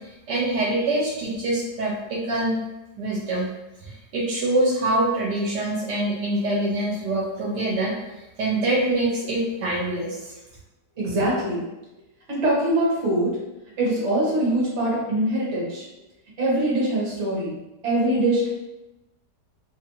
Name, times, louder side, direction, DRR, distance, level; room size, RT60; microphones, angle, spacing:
voice 1, 0.3-2.6 3.0-3.5 4.1-7.9 8.4-10.2, right 1 dB, 80° right, -3 dB, 1.2 m, -24 dB
voice 2, 11.0-11.6 12.3-13.4 13.8-15.8 16.4-17.6 17.8-18.5, right 1 dB, 45° right, -5 dB, 1.2 m, -23 dB
2.9 x 2.4 x 2.9 m, 0.97 s
omnidirectional pair, 1.8 m